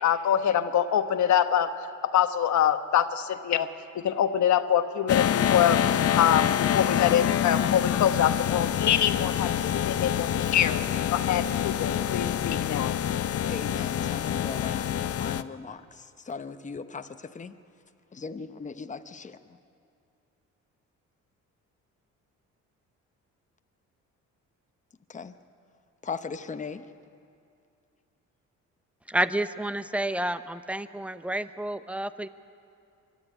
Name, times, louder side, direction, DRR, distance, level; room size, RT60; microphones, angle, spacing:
voice 1, 0.0-1.7 2.0-3.7 3.9-5.8 6.2-10.8 11.1-13.0, left 9 dB, 70° left, 9 dB, 1.1 m, -25 dB
sound 1, 5.1-15.4, left 10 dB, 50° left, 0.7 m, -26 dB
voice 2, 13.5-17.5 18.1-19.4 25.1-25.3 26.0-26.9, left 5 dB, 25° left, 9 dB, 0.9 m, -38 dB
voice 3, 29.1-32.3, right 1 dB, 5° right, 12 dB, 0.7 m, -30 dB
24.0 x 12.5 x 9.9 m, 2.4 s
cardioid pair, 90°, 30 cm